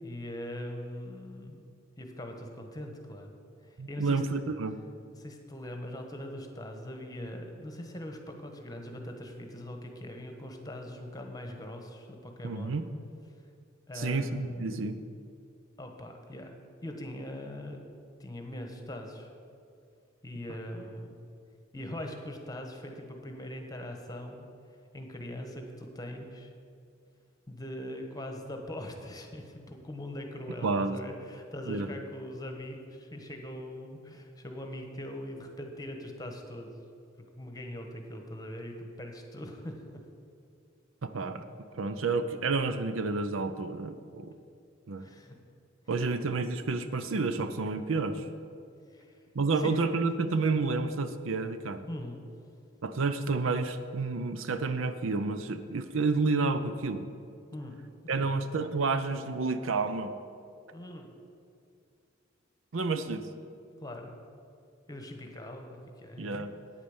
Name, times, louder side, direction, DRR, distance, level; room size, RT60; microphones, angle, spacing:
voice 1, 0.0-1.6 2.0-3.4 3.6-4.2 5.1-12.8 13.9-15.0 15.8-16.5 16.8-17.8 18.2-19.3 20.2-21.2 21.7-24.5 24.9-26.5 27.5-36.7 37.4-40.0 45.0-45.4 48.9-49.2 49.6-50.3 51.9-52.3 57.5-57.8 58.2-58.3 60.7-61.1 63.8-64.2 64.9-66.5, left 1 dB, 20° left, 3 dB, 1.2 m, -41 dB
voice 2, 3.8-4.8 12.4-12.9 13.9-15.0 30.6-31.0 31.7-31.9 41.0-44.3 44.9-45.0 45.9-48.3 49.3-51.8 52.8-57.0 58.1-60.1 62.7-63.3 66.2-66.5, right 3 dB, 70° right, 10 dB, 0.6 m, -30 dB
9.1 x 8.4 x 7.2 m, 2.4 s
head